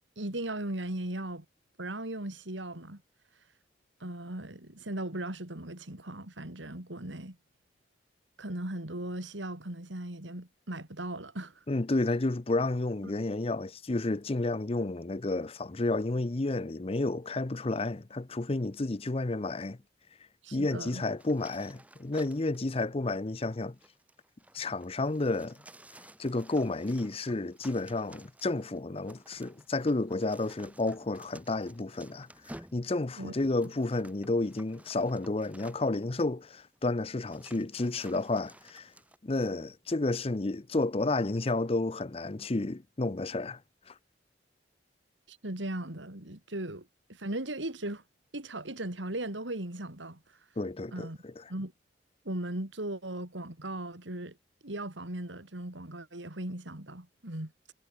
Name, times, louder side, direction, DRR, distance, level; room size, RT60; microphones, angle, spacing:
voice 1, 0.2-1.4 1.8-3.0 4.0-7.4 8.4-11.6 13.0-13.1 20.4-21.0 33.2-33.3 45.3-48.0 48.3-50.2 50.9-51.2 51.5-51.7 52.2-54.4 54.6-57.5, right 1 dB, 85° right, 3.4 m, -38 dB
voice 2, 11.7-19.8 20.5-23.8 24.5-25.6 26.2-38.9 39.2-43.6 43.9-44.0 50.6-51.4, left 2 dB, 30° left, 0.7 m, -31 dB
sound 1, 21.2-22.6 23.6-36.1 36.7-36.8 37.2-39.2, right 1 dB, 10° right, 3.2 m, -54 dB
head